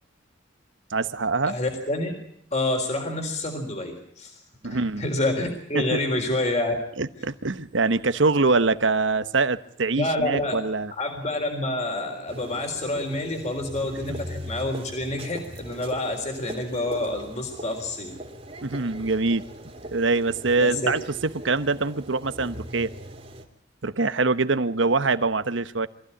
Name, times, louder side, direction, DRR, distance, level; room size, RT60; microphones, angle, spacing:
voice 1, 0.9-1.6 4.6-5.0 5.7-6.0 7.0-10.9 14.1-14.2 18.6-19.5 19.9-22.9 23.8-25.9, right 3 dB, 80° right, 1.0 m, -24 dB
voice 2, 1.4-2.1 2.5-4.4 4.6-6.7 9.9-10.6 11.0-18.1 20.6-20.9, left 1 dB, 35° left, 3.9 m, -28 dB
sound 1, 12.3-23.5, equal, 30° right, 2.8 m, -40 dB
24.5 x 15.5 x 9.9 m
head